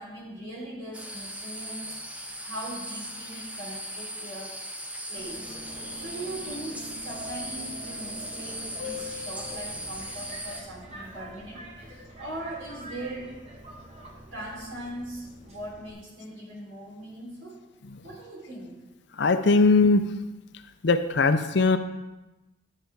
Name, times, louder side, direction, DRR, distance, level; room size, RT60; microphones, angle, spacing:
voice 1, 0.0-2.0 2.4-4.6 5.1-5.6 5.9-13.4 14.3-17.6 18.0-18.8, right 1 dB, 65° right, -3 dB, 3.3 m, -40 dB
sound 1, 0.9-10.6, equal, 5° right, 0.6 m, -38 dB
Subway metro underground, 5.2-15.9, left 1 dB, 30° right, 1.3 m, -44 dB
voice 2, 19.2-20.1 20.8-21.8, left 3 dB, 55° left, 9 dB, 0.6 m, -20 dB
10.5 x 6.5 x 4.6 m, 1.1 s
head